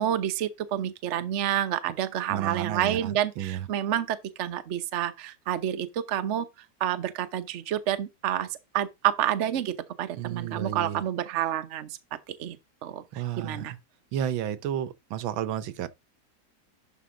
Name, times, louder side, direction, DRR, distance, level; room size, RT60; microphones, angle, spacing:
voice 1, 0.0-6.5 6.8-8.5 8.7-12.0 12.3-12.6 12.8-13.7, right 11 dB, 50° right, 0.9 m, -29 dB
voice 2, 2.3-3.7 10.1-11.0 13.1-13.7 14.1-15.9, right 10 dB, 85° right, 1.6 m, -32 dB
11.5 x 5.2 x 3.8 m
omnidirectional pair, 2.1 m